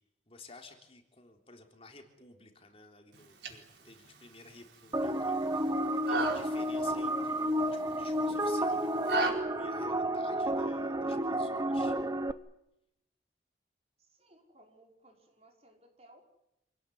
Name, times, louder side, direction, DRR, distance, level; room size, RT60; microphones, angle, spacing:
voice 1, 0.3-5.7 6.1-12.0, left 3 dB, 35° left, 4 dB, 3.6 m, -54 dB
sound 1, 3.1-9.3, right 3 dB, 80° right, 4.5 m, -38 dB
sound 2, 4.9-12.3, right 1 dB, 20° right, 1.0 m, -31 dB
voice 2, 14.0-16.2, right 1 dB, 35° right, 2 dB, 5.4 m, -61 dB
27.5 x 17.5 x 9.5 m, 0.85 s
head